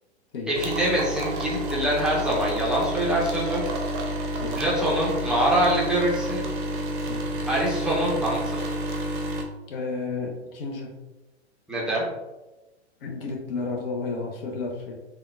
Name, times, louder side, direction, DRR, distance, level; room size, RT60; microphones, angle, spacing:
voice 1, 0.5-3.6 4.5-6.4 7.5-8.6 11.7-12.0, right 1 dB, ahead, -6 dB, 0.5 m, -24 dB
sound 1, 0.5-9.4, right 1 dB, 45° right, 0.6 m, -30 dB
voice 2, 9.7-10.9 13.0-14.9, left 4 dB, 55° left, 0 dB, 0.7 m, -32 dB
3.7 x 2.2 x 2.3 m, 1.1 s
figure-of-eight pair, 110°, 35 cm